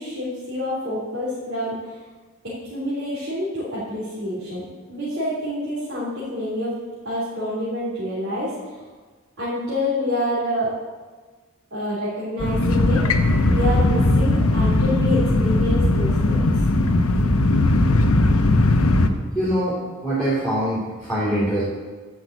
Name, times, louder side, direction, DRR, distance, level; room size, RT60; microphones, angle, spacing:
voice 1, 0.0-1.7 2.7-4.6 4.9-6.7 7.0-8.5 9.4-10.7 11.7-13.0 13.4-16.5 16.9-17.0, left 1 dB, 55° right, -10 dB, 3.5 m, -27 dB
sound 1, 12.4-19.1, left 2 dB, 85° left, 1.0 m, -18 dB
voice 2, 19.3-21.6, right 1 dB, 5° left, -9 dB, 3.1 m, -23 dB
11.0 x 5.8 x 8.1 m, 1.4 s
head